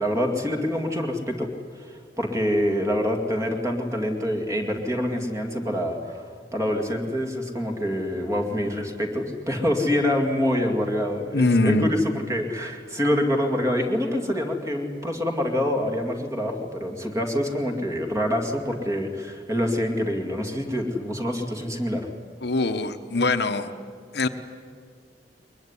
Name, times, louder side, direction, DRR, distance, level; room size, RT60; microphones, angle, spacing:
voice 1, 0.0-22.1, left 1 dB, 20° right, 3 dB, 2.3 m, -26 dB
voice 2, 11.3-11.9 22.4-23.7 24.1-24.3, left 2 dB, 65° left, 8 dB, 1.1 m, -22 dB
22.0 x 21.0 x 9.8 m, 2.1 s
head